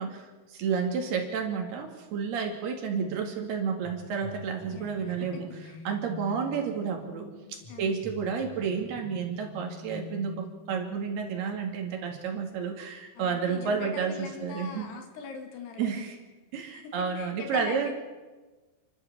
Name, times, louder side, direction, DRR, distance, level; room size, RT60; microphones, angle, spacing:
voice 1, 0.0-5.5 5.9-14.9 15.8-16.2 16.5-17.9, right 6 dB, 70° right, 2 dB, 4.3 m, -31 dB
sound 1, 3.8-11.4, left 4 dB, 55° left, 5.2 m, -46 dB
voice 2, 4.7-5.9 7.7-8.0 13.2-16.0 16.7-17.9, left 5 dB, 75° left, 4 dB, 4.2 m, -42 dB
29.5 x 12.5 x 7.4 m, 1.3 s
omnidirectional pair, 4.8 m